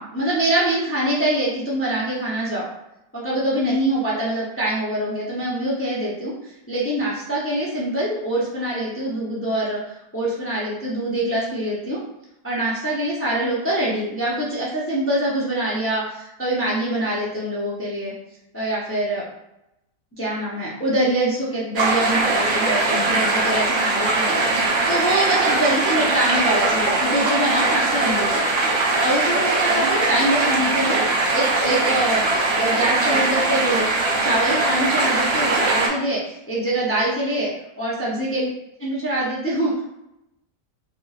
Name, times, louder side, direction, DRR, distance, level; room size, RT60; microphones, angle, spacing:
voice 1, 0.0-2.6 3.1-12.0 12.4-18.1 18.5-19.2 20.2-28.3 29.0-31.0 31.3-33.9 34.2-37.5 37.8-38.5 38.8-39.8, right 1 dB, 15° left, -6 dB, 0.4 m, -24 dB
sound 1, 21.8-35.9, right 2 dB, 55° right, 1.0 m, -21 dB
4.4 x 2.6 x 2.4 m, 0.86 s
omnidirectional pair, 1.8 m